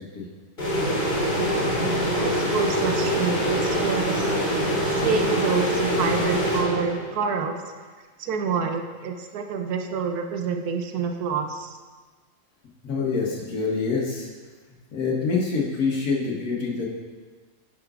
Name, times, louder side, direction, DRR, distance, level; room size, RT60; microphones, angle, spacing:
sound 1, 0.6-7.2, equal, 30° left, 1.8 m, -24 dB
voice 1, 2.2-4.3 4.8-7.6 8.2-11.8, right 5 dB, 80° right, 5 dB, 1.1 m, -27 dB
voice 2, 12.8-14.3 14.9-16.9, left 4 dB, 70° left, -3 dB, 1.7 m, -26 dB
9.8 x 5.9 x 2.4 m, 1.4 s
omnidirectional pair, 1.6 m